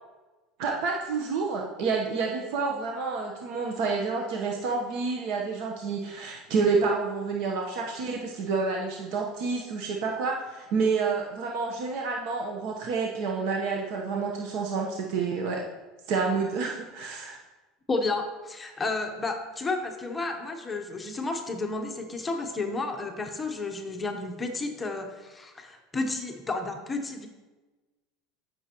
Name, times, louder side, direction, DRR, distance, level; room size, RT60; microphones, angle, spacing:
voice 1, 0.6-15.6 16.1-17.4, right 4 dB, 60° right, 0 dB, 1.0 m, -29 dB
voice 2, 17.9-27.3, left 3 dB, 15° left, 4 dB, 0.9 m, -32 dB
13.5 x 6.2 x 3.0 m, 1.2 s
supercardioid pair, 145°, 0 cm